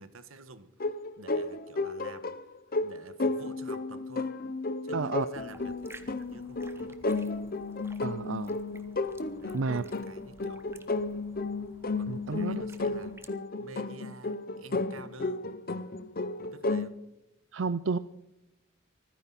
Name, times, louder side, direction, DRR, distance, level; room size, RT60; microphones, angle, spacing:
voice 1, 0.0-2.4 2.8-4.3 4.8-7.3 9.4-10.6 12.0-13.1 13.6-15.5 16.4-17.0, right 3 dB, 85° right, 12 dB, 1.4 m, -50 dB
sound 1, 0.8-16.9, left 3 dB, 45° left, 0.8 m, -33 dB
voice 2, 4.9-5.3 8.0-8.6 9.5-9.8 12.1-12.6 17.5-18.0, right 4 dB, 65° right, 13 dB, 0.5 m, -31 dB
sound 2, 5.3-13.3, right 2 dB, 10° right, 1.1 m, -55 dB
25.5 x 10.0 x 4.2 m, 0.88 s
head